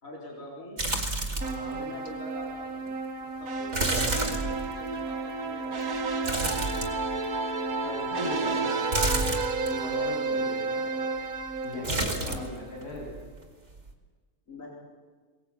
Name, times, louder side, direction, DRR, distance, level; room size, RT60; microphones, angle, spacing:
voice 1, 0.0-0.8 1.7-2.9 3.2-6.4 10.1-10.5 12.2-12.7 14.5-14.7, left 1 dB, 55° left, -3 dB, 4.4 m, -44 dB
sound 1, 0.8-1.7 2.1-2.2 3.7-5.0 6.2-7.3 8.9-9.7 11.8-12.6 12.8-13.4 13.8-13.9, right 2 dB, 45° right, 2.5 m, -29 dB
voice 2, 1.3-1.8 7.8-9.0 9.6-11.1 11.6-13.1, left 1 dB, 85° left, -3 dB, 8.4 m, -38 dB
sound 2, 1.4-12.6, right 3 dB, 65° right, 2.0 m, -31 dB
23.0 x 18.5 x 8.5 m, 1.4 s
omnidirectional pair, 1.7 m